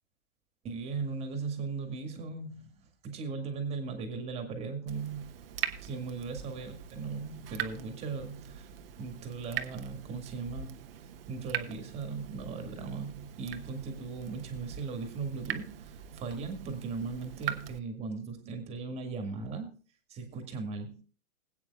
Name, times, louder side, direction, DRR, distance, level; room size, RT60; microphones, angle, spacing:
voice 1, 0.6-2.7 3.0-5.3 5.8-8.7 9.0-10.8 11.3-19.8 20.1-21.0, right 4 dB, 15° right, 2.0 m, -38 dB
Water tap faucet / Drip, 4.9-17.8, right 10 dB, 45° right, 1.0 m, -42 dB
20.5 x 8.8 x 2.3 m
hypercardioid pair, 150°, 40 cm